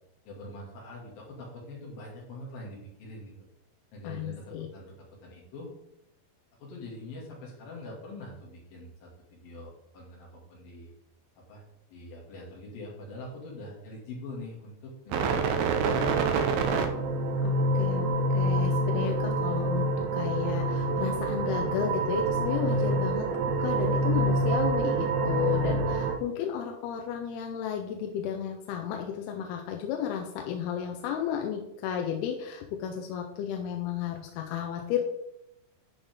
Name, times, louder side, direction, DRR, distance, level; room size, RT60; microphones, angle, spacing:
voice 1, 0.3-3.3 3.9-5.7 6.6-10.9 11.5-11.6 11.9-16.5, left 1 dB, 65° left, -3 dB, 4.0 m, -44 dB
voice 2, 4.0-4.7 17.4-35.0, left 8 dB, 90° left, 3 dB, 2.7 m, -33 dB
sound 1, 15.1-26.2, right 2 dB, 80° right, 2.7 m, -26 dB
11.0 x 5.6 x 3.6 m, 0.84 s
omnidirectional pair, 4.6 m